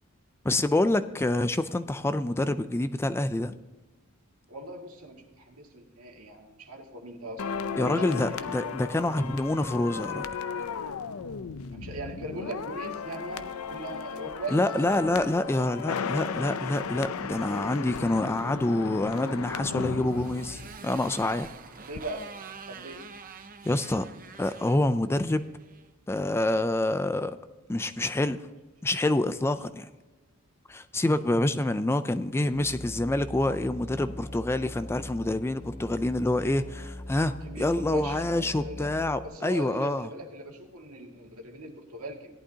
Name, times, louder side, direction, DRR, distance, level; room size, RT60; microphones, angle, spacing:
voice 1, 0.4-3.6 7.8-10.3 14.5-21.5 23.6-24.1 24.4-25.4 26.1-27.4 27.7-28.4 28.8-29.9 30.7-40.1, left 1 dB, 10° left, 11 dB, 0.3 m, -27 dB
voice 2, 4.5-8.4 11.7-15.3 21.8-22.3 22.7-23.0 31.0-31.2 37.4-38.9 39.2-42.3, right 1 dB, 85° right, 1 dB, 2.0 m, -40 dB
sound 1, 7.4-21.5 21.8-22.0, left 6 dB, 85° left, 0.6 m, -35 dB
Motorcycle, 19.4-25.9, right 5 dB, 40° right, 0.7 m, -46 dB
Musical instrument, 32.5-39.3, left 1 dB, 40° left, 1.7 m, -42 dB
17.5 x 11.0 x 2.8 m, 1.2 s
head